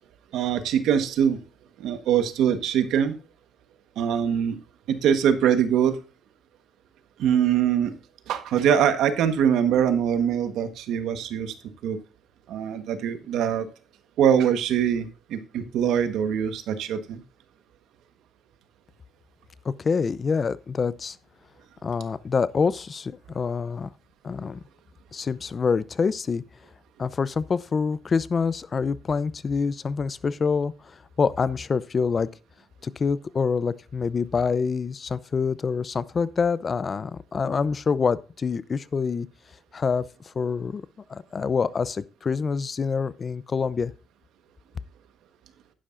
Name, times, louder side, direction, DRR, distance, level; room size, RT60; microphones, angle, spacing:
voice 1, 0.3-1.4 1.8-3.2 4.0-4.6 4.9-6.0 7.2-8.0 8.3-11.5 11.8-12.0 12.5-13.7 14.2-17.2, right 8 dB, 85° right, 1.3 m, -23 dB
voice 2, 19.6-21.2 21.8-23.9 24.2-24.6 25.1-26.4 27.0-32.3 32.8-39.3 39.7-40.8 41.1-43.9, left 5 dB, 40° left, 0.6 m, -26 dB
11.5 x 10.0 x 2.6 m
cardioid pair, 90°, 0 cm